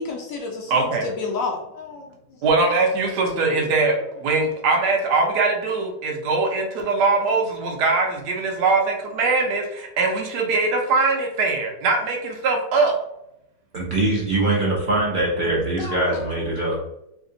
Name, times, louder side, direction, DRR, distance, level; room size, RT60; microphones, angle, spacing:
voice 1, 0.0-2.1 3.3-3.4 15.4-15.5 15.8-16.3, left 4 dB, 65° left, 0 dB, 0.8 m, -31 dB
voice 2, 0.7-1.1 2.4-12.9, right 3 dB, 70° right, 2 dB, 1.3 m, -21 dB
voice 3, 13.7-16.8, right 2 dB, 55° right, -4 dB, 0.5 m, -22 dB
3.3 x 2.8 x 2.6 m, 0.84 s
omnidirectional pair, 1.9 m